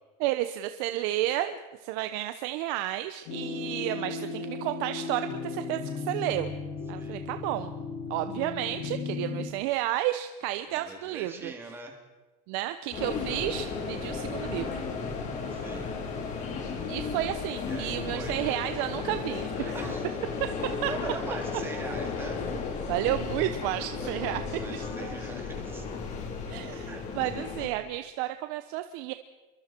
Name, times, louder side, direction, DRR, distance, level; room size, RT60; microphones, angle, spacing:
voice 1, 0.2-6.5 6.9-7.7 8.1-11.5 12.5-14.8 16.9-19.7 20.4-20.5 20.8-20.9 22.9-24.9 26.5-29.1, right 14 dB, 55° right, 9 dB, 0.9 m, -31 dB
sound 1, 3.3-9.5, left 4 dB, 65° left, 7.1 m, -36 dB
voice 2, 10.7-12.0 15.5-15.9 17.6-18.5 19.6-20.1 20.9-22.4 24.0-25.8 26.8-27.0, right 3 dB, 10° right, 1 dB, 3.2 m, -42 dB
sound 2, 12.9-27.7, left 5 dB, 35° left, 3.8 m, -34 dB
27.0 x 23.0 x 4.5 m, 1.2 s
supercardioid pair, 155°, 21 cm